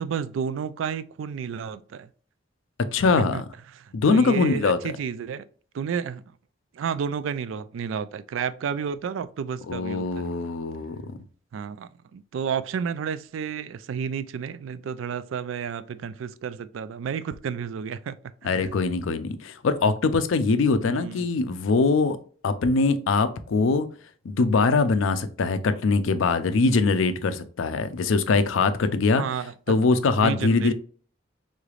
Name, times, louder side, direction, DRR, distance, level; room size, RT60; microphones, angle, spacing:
voice 1, 0.0-2.1 3.2-3.4 3.7-5.4 5.7-6.2 6.7-10.3 11.5-18.2 18.4-18.7 20.8-21.3 29.2-29.5 30.2-30.7, right 7 dB, 80° right, 0.3 m, -31 dB
voice 2, 2.9-3.4 3.9-4.8 9.7-11.2 18.4-22.2 22.4-23.9 24.2-29.2 29.7-30.7, left 4 dB, 85° left, 0.5 m, -22 dB
3.8 x 3.2 x 2.4 m
head